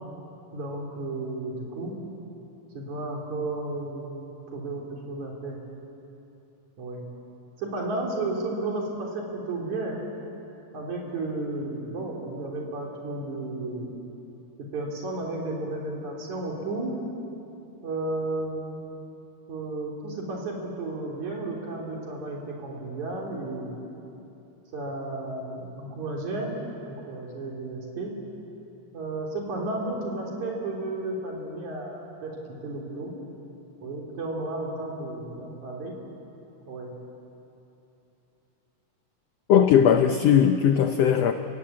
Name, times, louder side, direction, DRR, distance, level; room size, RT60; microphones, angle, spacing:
voice 1, 0.5-2.0 2.7-4.2 4.5-5.6 6.8-7.0 7.6-10.2 10.7-13.9 14.6-17.0 17.8-18.8 19.5-23.8 24.7-26.5 26.8-28.1 28.9-32.3 32.6-33.1 33.8-35.9 36.7-36.9, right 2 dB, 60° right, -1 dB, 4.8 m, -33 dB
voice 2, 39.5-41.3, left 8 dB, 80° left, 7 dB, 1.4 m, -19 dB
30.0 x 16.5 x 8.6 m, 2.9 s
omnidirectional pair, 3.9 m